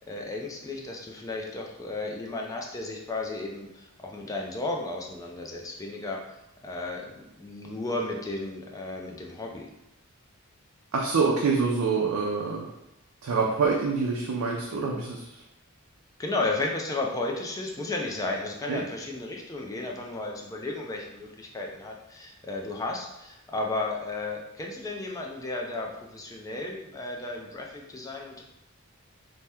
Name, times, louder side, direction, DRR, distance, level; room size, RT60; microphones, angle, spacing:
voice 1, 0.0-6.2 6.6-9.7 14.7-14.9 16.2-28.4, left 2 dB, 15° left, 0 dB, 0.3 m, -34 dB
voice 2, 10.9-12.7 13.2-15.4 18.7-18.8, right 4 dB, 85° right, -1 dB, 0.4 m, -26 dB
2.8 x 2.1 x 3.4 m, 0.89 s
head